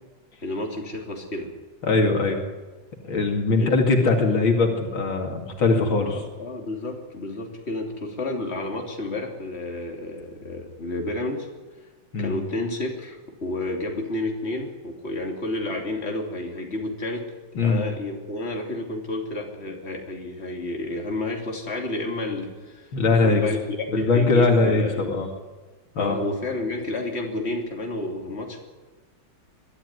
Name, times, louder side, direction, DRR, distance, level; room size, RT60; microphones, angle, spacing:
voice 1, 0.4-1.5 3.6-3.9 5.9-11.5 12.2-17.3 17.6-22.9 23.2-25.1 26.0-28.6, left 2 dB, 30° left, 1 dB, 3.3 m, -30 dB
voice 2, 1.8-2.4 3.0-6.2 12.1-12.3 17.5-17.8 22.9-23.4 23.9-25.3 25.9-26.2, left 3 dB, 80° left, 3 dB, 3.2 m, -21 dB
22.0 x 13.5 x 9.6 m, 1.3 s
omnidirectional pair, 2.1 m